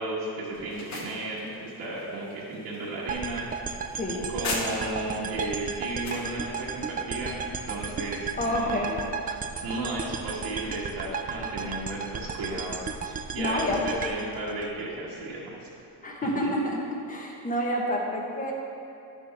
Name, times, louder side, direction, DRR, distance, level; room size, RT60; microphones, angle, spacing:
voice 1, 0.0-3.4 4.1-7.4 7.7-8.9 9.3-15.7 16.2-16.5, right 2 dB, 65° right, -9 dB, 1.8 m, -34 dB
sound 1, 0.5-5.1 5.5-6.3, left 2 dB, 40° left, 1.4 m, -38 dB
sound 2, 3.1-15.3, right 6 dB, 20° right, 0.4 m, -35 dB
voice 2, 8.4-9.0 13.4-13.8 16.0-16.8 17.1-18.5, left 1 dB, 20° left, -1 dB, 1.4 m, -28 dB
11.0 x 7.0 x 3.6 m, 2.7 s
cardioid pair, 125°, 42 cm